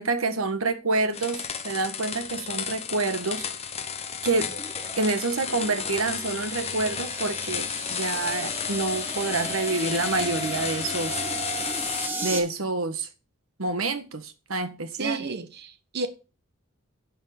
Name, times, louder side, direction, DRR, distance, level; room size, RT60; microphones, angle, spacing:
voice 1, 0.0-3.4 4.2-4.6 5.0-11.2 12.2-13.1 13.6-15.2, right 3 dB, 75° right, 1.5 m, -27 dB
sound 1, 1.1-12.1, left 7 dB, 30° left, 1.2 m, -33 dB
sound 2, 4.5-12.4, right 1 dB, 10° right, 2.1 m, -36 dB
voice 2, 15.0-16.1, right 3 dB, 50° right, 1.2 m, -31 dB
10.5 x 5.5 x 6.6 m
head